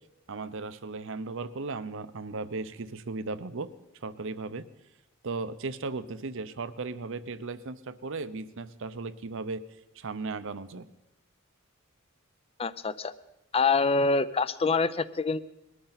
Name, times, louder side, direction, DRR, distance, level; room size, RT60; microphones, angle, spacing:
voice 1, 0.3-3.7 4.0-4.7 5.2-9.6 10.0-10.9, right 3 dB, 65° right, 14 dB, 0.7 m, -36 dB
voice 2, 12.6-13.1 13.5-15.4, left 4 dB, 30° left, 15 dB, 0.5 m, -25 dB
20.5 x 13.0 x 4.1 m, 0.94 s
head